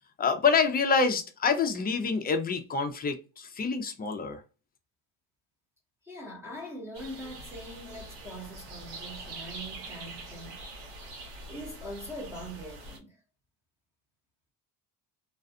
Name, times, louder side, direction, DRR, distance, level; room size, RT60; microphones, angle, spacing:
voice 1, 0.2-4.4, left 5 dB, 25° left, 0.5 m, -27 dB
voice 2, 6.0-10.6 11.5-13.2, equal, 5° right, 1.0 m, -42 dB
sound 1, 6.9-13.0, right 2 dB, 80° right, 1.0 m, -44 dB
2.5 x 2.3 x 2.6 m
cardioid pair, 100°, 41 cm